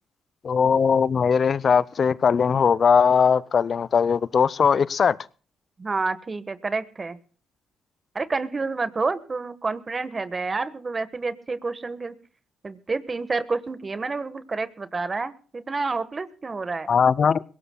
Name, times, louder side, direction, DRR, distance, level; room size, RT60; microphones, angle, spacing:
voice 1, 0.4-5.2 16.9-17.4, left 6 dB, 50° left, 0.6 m, -20 dB
voice 2, 5.8-7.2 8.1-12.1 12.6-16.9, right 3 dB, 35° right, 1.3 m, -29 dB
22.0 x 17.5 x 2.2 m
supercardioid pair, 55°, 0 cm